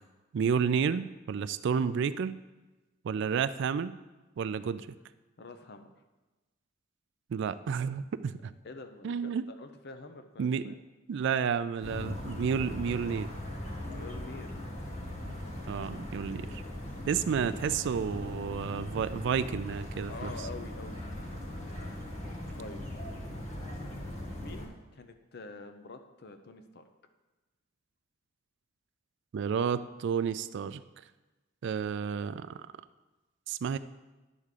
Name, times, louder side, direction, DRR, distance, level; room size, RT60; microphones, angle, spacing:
voice 1, 0.3-2.4 3.0-4.0 4.4-4.9 7.3-8.5 9.0-9.4 10.4-10.8 11.1-13.3 15.7-16.6 17.1-20.3 29.3-30.8 31.6-32.5 33.5-33.8, right 6 dB, 60° right, 13 dB, 0.3 m, -31 dB
voice 2, 5.4-5.9 8.6-10.7 13.9-14.5 17.4-17.7 20.0-21.0 22.6-22.8 24.3-26.9, left 3 dB, 55° left, 7 dB, 0.7 m, -46 dB
sound 1, 11.8-24.7, left 1 dB, 35° left, 1.3 m, -39 dB
10.5 x 3.6 x 6.6 m, 1.1 s
head